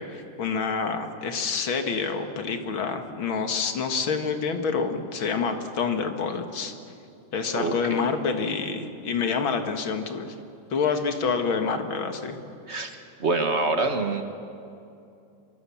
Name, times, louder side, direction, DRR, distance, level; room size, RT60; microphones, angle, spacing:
voice 1, 0.0-6.7 7.3-10.3 10.7-12.4, left 5 dB, 90° left, 6 dB, 2.5 m, -27 dB
voice 2, 7.5-8.0 12.7-14.2, right 3 dB, 35° right, 6 dB, 1.5 m, -26 dB
25.5 x 23.5 x 7.1 m, 2.6 s
omnidirectional pair, 2.1 m